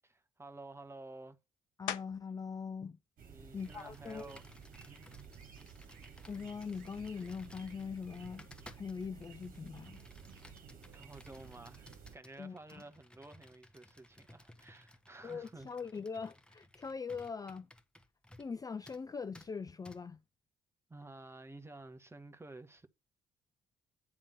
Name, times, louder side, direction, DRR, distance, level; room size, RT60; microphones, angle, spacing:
voice 1, 0.0-1.4 3.3-4.4 4.8-5.1 10.9-15.7 20.9-22.9, right 2 dB, 15° right, 1.1 m, -52 dB
voice 2, 1.8-3.0 3.5-4.3 6.3-8.5 8.8-10.0 12.4-12.8 15.2-17.7 18.4-20.2, left 5 dB, 20° left, 0.4 m, -42 dB
sound 1, 1.9-2.5 3.0-7.4 8.0-13.1 13.4-19.1, left 11 dB, 70° left, 0.7 m, -52 dB
sound 2, 3.2-12.2, right 6 dB, 50° right, 1.6 m, -54 dB
Computer keyboard, 3.6-18.6 18.9-19.0 19.3-19.5 19.9-20.0, left 1 dB, 5° left, 1.4 m, -59 dB
9.6 x 3.6 x 6.3 m
figure-of-eight pair, 45°, 17 cm